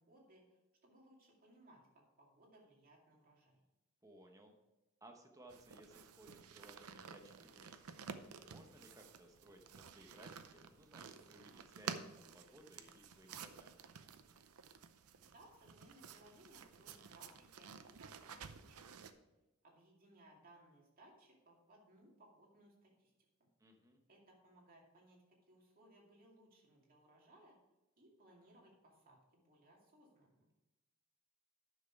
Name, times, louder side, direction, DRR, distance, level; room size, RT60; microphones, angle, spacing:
voice 1, 0.0-3.6 15.2-18.9 19.6-23.1 24.1-25.2 25.5-27.6 28.0-30.4, right 1 dB, 40° right, -2 dB, 2.4 m, -64 dB
voice 2, 4.0-4.5 5.0-13.8 23.6-24.0, right 1 dB, 15° right, 3 dB, 1.0 m, -61 dB
sound 1, 5.5-19.1, right 6 dB, 75° right, 0.6 m, -52 dB
10.0 x 6.3 x 4.7 m, 1.0 s
head